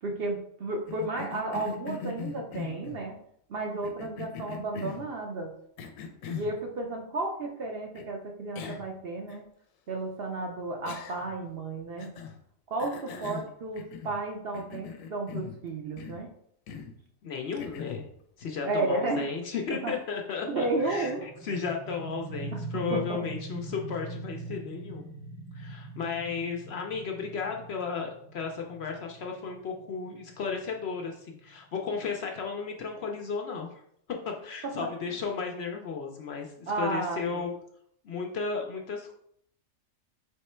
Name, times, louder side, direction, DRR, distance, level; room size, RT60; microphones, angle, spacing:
voice 1, 0.0-3.2 3.5-5.5 6.4-9.4 9.9-12.1 12.7-16.3 18.6-19.3 19.8-19.9 20.4-21.2 22.5-22.6 22.9-23.2 36.7-37.4, right 2 dB, 55° right, 2 dB, 0.8 m, -33 dB
Cough, 0.9-3.1 3.8-5.1 5.8-6.6 7.9-8.1 8.5-8.9 9.3-9.4 10.8-11.4 12.0-12.4 12.8-14.2 14.5-15.6 16.0-16.3 16.7-17.0 17.6-18.1, left 5 dB, 85° left, 1.0 m, -40 dB
voice 2, 17.2-18.1 18.4-25.1 25.5-33.7 34.2-37.5 38.0-39.1, left 5 dB, 60° left, 2 dB, 0.8 m, -34 dB
sound 1, 20.6-32.0, right 2 dB, 15° right, 0.6 m, -42 dB
3.6 x 3.2 x 4.3 m, 0.68 s
omnidirectional pair, 1.4 m